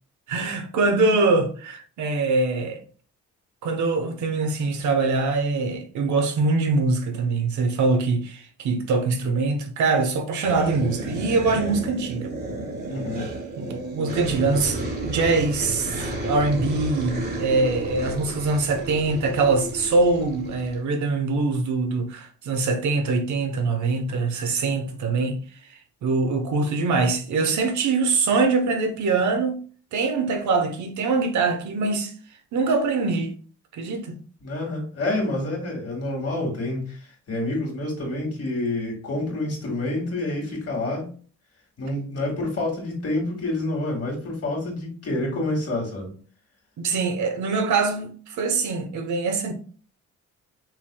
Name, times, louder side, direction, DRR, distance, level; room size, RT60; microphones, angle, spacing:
voice 1, 0.3-2.8 3.6-12.3 13.6-25.4 26.0-29.6 29.9-32.1 32.5-33.3 33.8-34.1 46.8-49.5, right 3 dB, 70° right, 1.1 m, -23 dB
sound 1, 10.4-20.8, right 1 dB, 30° right, 1.7 m, -32 dB
voice 2, 12.9-13.3 34.4-41.1 41.8-46.1, left 2 dB, 50° left, 2.2 m, -28 dB
6.0 x 3.5 x 2.3 m
cardioid pair, 90°, 30 cm